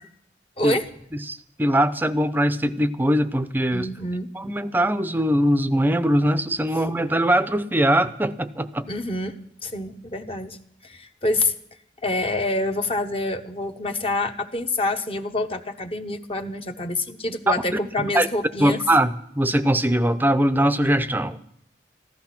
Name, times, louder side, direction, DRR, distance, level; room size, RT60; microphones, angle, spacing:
voice 1, 0.6-0.9 3.7-4.3 6.7-6.8 8.9-9.3 9.6-10.6 10.8-11.5 12.0-18.8, left 2 dB, 30° left, 6 dB, 1.0 m, -26 dB
voice 2, 1.3-3.9 4.3-8.9 17.5-17.6 18.1-18.3 18.6-21.4, right 1 dB, 10° right, 13 dB, 0.6 m, -21 dB
15.0 x 13.0 x 5.9 m, 0.70 s
head